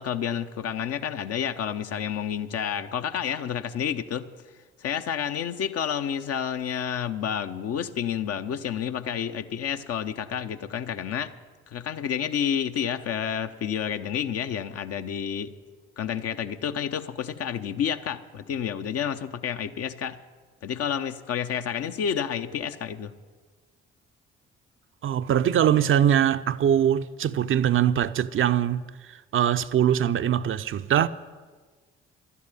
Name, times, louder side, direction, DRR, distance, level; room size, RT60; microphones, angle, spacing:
voice 1, 0.0-4.3 4.8-11.3 11.7-15.5 16.0-20.2 20.6-23.1, left 8 dB, 55° left, 0.9 m, -30 dB
voice 2, 25.0-31.1, right 10 dB, 45° right, 0.6 m, -22 dB
12.0 x 8.4 x 9.9 m
hypercardioid pair, 45°, 30 cm